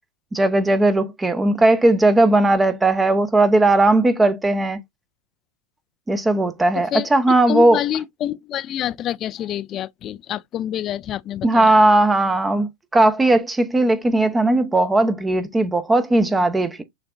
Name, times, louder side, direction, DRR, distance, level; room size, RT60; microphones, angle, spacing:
voice 1, 0.3-4.8 6.1-7.8 11.4-16.8, right 2 dB, 15° right, 0.7 m, -17 dB
voice 2, 7.5-11.8, left 11 dB, 40° left, 0.4 m, -27 dB
6.4 x 3.4 x 2.5 m
hypercardioid pair, 100°, 0 cm